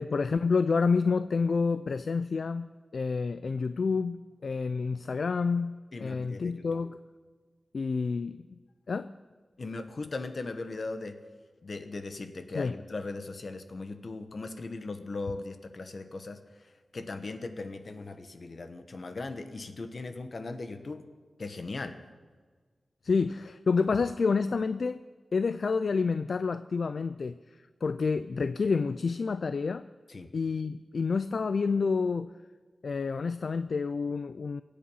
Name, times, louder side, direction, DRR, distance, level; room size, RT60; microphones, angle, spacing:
voice 1, 0.0-7.0 7.7-8.6 8.9-9.1 12.5-12.8 23.0-25.0 25.3-27.4 27.8-29.8 30.3-32.3 32.8-34.6, left 4 dB, 70° left, 13 dB, 0.4 m, -29 dB
voice 2, 5.9-6.6 9.6-11.2 11.6-16.4 16.9-21.1 21.4-22.0 30.1-30.3, left 3 dB, 55° left, 8 dB, 1.2 m, -38 dB
23.5 x 8.7 x 5.6 m, 1.5 s
wide cardioid pair, 110°, 0 cm